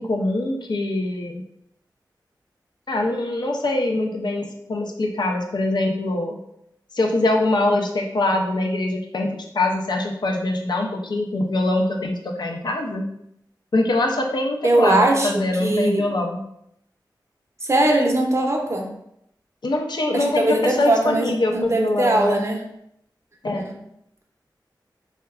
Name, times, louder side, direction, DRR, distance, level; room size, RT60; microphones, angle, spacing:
voice 1, 0.0-1.4 2.9-6.4 6.9-13.0 13.7-16.4 19.6-22.5 23.4-23.7, left 2 dB, 65° left, 1 dB, 0.5 m, -23 dB
voice 2, 14.6-16.1 17.6-18.9 20.1-22.6 23.6-23.7, right 1 dB, 35° right, 2 dB, 0.6 m, -20 dB
3.6 x 2.1 x 2.3 m, 0.76 s
cardioid pair, 40°, 8 cm